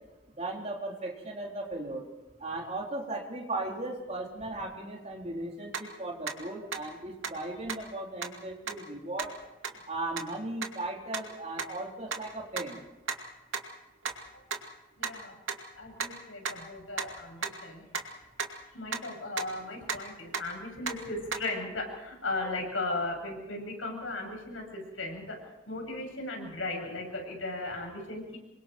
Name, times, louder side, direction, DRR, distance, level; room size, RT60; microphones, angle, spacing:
voice 1, 0.4-2.1 2.4-9.3 9.9-12.8, right 2 dB, 35° right, -1 dB, 4.0 m, -37 dB
sound 1, 5.7-5.8 6.3-6.4 6.7-6.8 7.2-7.3 7.7-7.8 8.2-8.3 8.7-8.8 9.2-9.3 9.6-9.7 10.2-10.3 10.6-10.7 11.1-11.2 11.6-11.7 12.1-12.2 12.6-12.7 13.1-13.2 13.5-13.6 14.0-14.1 14.5-14.6 15.0-15.1 15.5-15.6 16.0-16.1 16.5-16.6 17.0-17.1 17.4-17.5 17.9-18.0 18.4-18.5 18.9-19.0 19.4-19.5 19.9-20.0 20.3-20.4 20.9-21.0 21.3-21.4, right 5 dB, 85° right, 2.4 m, -32 dB
voice 2, 15.0-15.3 15.8-17.8 18.7-28.4, left 2 dB, 85° left, 1 dB, 7.7 m, -37 dB
27.5 x 23.5 x 4.6 m, 1.0 s
head